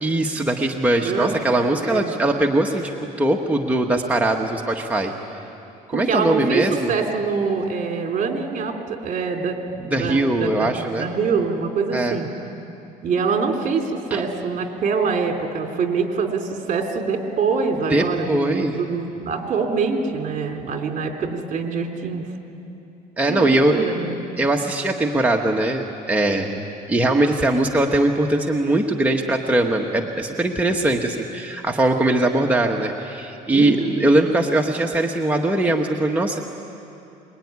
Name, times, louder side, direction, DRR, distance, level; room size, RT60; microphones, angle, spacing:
voice 1, 0.0-2.9 3.2-5.1 5.9-6.9 9.9-11.1 11.9-12.2 14.1-14.2 17.9-18.8 23.2-23.8 24.4-26.6 26.9-36.4, right 1 dB, 10° right, 0 dB, 1.5 m, -21 dB
voice 2, 1.8-2.2 5.9-12.3 13.0-22.3 23.3-24.2 33.5-34.1, right 5 dB, 50° right, 2 dB, 3.5 m, -24 dB
25.0 x 22.0 x 9.7 m, 2.8 s
cardioid pair, 110°, 17 cm